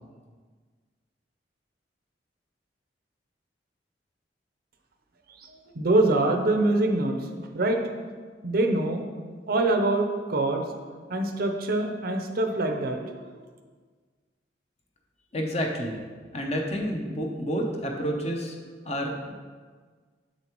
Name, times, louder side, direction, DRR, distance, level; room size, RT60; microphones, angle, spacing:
voice 1, 5.4-7.2 7.5-7.8 8.4-9.0 9.5-10.6 11.1-13.3, right 2 dB, 55° right, 4 dB, 0.6 m, -24 dB
voice 2, 15.3-16.0 16.3-18.6 18.8-19.3, equal, 35° left, 1 dB, 0.8 m, -29 dB
7.0 x 6.6 x 3.0 m, 1.5 s
head